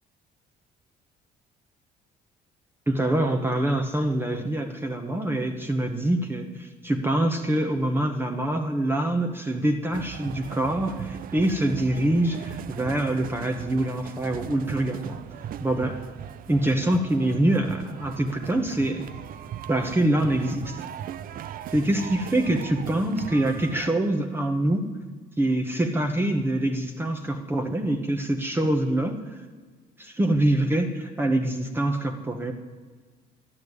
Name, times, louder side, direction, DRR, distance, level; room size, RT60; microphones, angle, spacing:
voice 1, 2.9-15.2 15.6-16.0 16.5-19.1 19.7-20.8 21.7-24.9 25.4-29.2 30.0-32.5, right 1 dB, 15° right, 4 dB, 1.2 m, -25 dB
sound 1, 9.9-23.9, right 10 dB, 60° right, 0.6 m, -38 dB
11.5 x 10.5 x 8.3 m, 1.4 s
cardioid pair, 110°, 17 cm